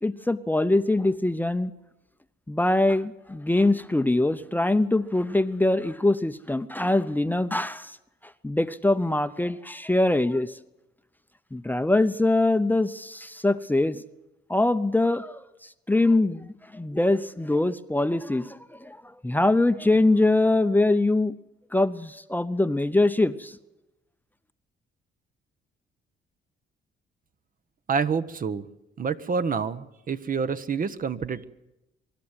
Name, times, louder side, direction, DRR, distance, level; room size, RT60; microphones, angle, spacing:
voice 1, 0.0-1.7 2.5-8.0 8.2-10.6 11.5-14.0 14.5-21.3 21.7-23.6, left 2 dB, 10° left, 12 dB, 0.7 m, -23 dB
voice 2, 27.9-28.7 29.0-31.4, right 5 dB, 45° right, 12 dB, 1.0 m, -27 dB
24.0 x 12.0 x 9.8 m, 0.95 s
cardioid pair, 90°, 20 cm